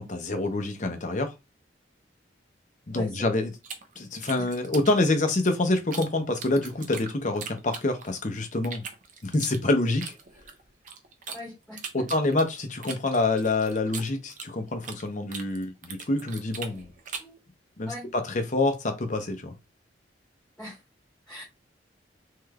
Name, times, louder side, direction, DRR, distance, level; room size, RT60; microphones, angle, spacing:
voice 1, 0.0-1.3 2.9-3.5 4.0-8.8 9.2-10.1 11.9-16.9 17.8-17.9 18.3-19.5, left 2 dB, 40° left, 0.7 m, -26 dB
voice 2, 2.9-3.2 4.4-4.5 11.3-12.0 17.2-17.4 17.9-18.1 20.6-20.8 21.3-21.4, left 1 dB, 5° left, 1.4 m, -41 dB
sound 1, 3.6-6.1 6.4-8.2 8.6-11.4 11.8-15.0 15.3-17.4, right 6 dB, 45° right, 0.6 m, -40 dB
3.3 x 3.2 x 2.3 m
head